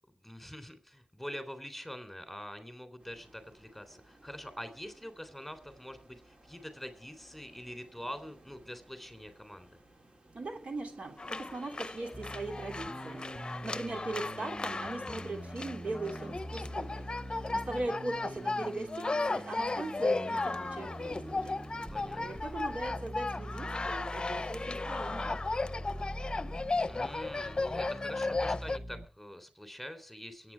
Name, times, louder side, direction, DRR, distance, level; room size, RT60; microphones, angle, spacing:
voice 1, 0.1-9.7 21.9-22.4 26.9-30.5, equal, 5° left, 9 dB, 3.5 m, -45 dB
sound 1, 3.0-22.9, right 1 dB, 50° right, 3.8 m, -58 dB
voice 2, 10.3-13.3 13.6-17.1 17.5-21.6 22.2-25.3, right 2 dB, 70° right, 3 dB, 3.0 m, -39 dB
sound 2, 11.2-28.8, left 3 dB, 45° left, 0.7 m, -35 dB
sound 3, 12.1-29.1, right 1 dB, 15° right, 1.5 m, -44 dB
23.5 x 9.2 x 4.7 m, 0.38 s
wide cardioid pair, 75°, 2 cm